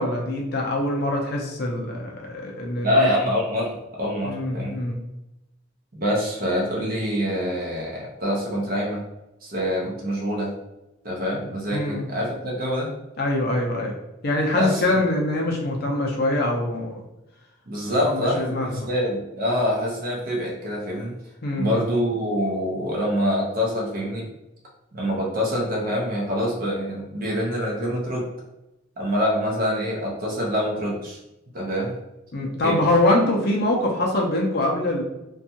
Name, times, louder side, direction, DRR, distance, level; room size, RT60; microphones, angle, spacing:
voice 1, 0.0-3.1 4.2-5.0 11.7-12.0 13.2-13.9 14.2-17.0 18.0-18.9 21.4-21.7 32.3-35.0, left 1 dB, 50° left, 0 dB, 0.5 m, -24 dB
voice 2, 2.8-4.7 5.9-9.0 9.4-10.5 11.0-12.9 14.5-15.0 17.7-21.1 21.5-24.3 24.9-28.3 29.0-31.2 31.5-31.9 32.6-32.8, equal, 45° right, -2 dB, 0.7 m, -25 dB
2.5 x 2.3 x 2.7 m, 0.92 s
head